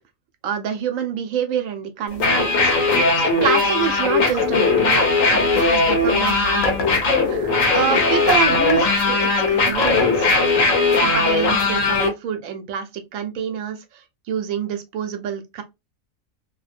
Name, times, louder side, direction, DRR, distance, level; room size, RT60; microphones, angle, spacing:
voice 1, 0.4-6.7 7.2-10.3 11.0-15.6, right 8 dB, 90° right, 1.0 m, -27 dB
sound 1, 2.1-12.1, left 3 dB, 80° left, 1.1 m, -19 dB
sound 2, 6.6-7.0 8.3-8.9 9.8-10.2 11.5-11.6, left 5 dB, 60° left, 0.5 m, -26 dB
2.7 x 2.1 x 2.4 m
omnidirectional pair, 1.3 m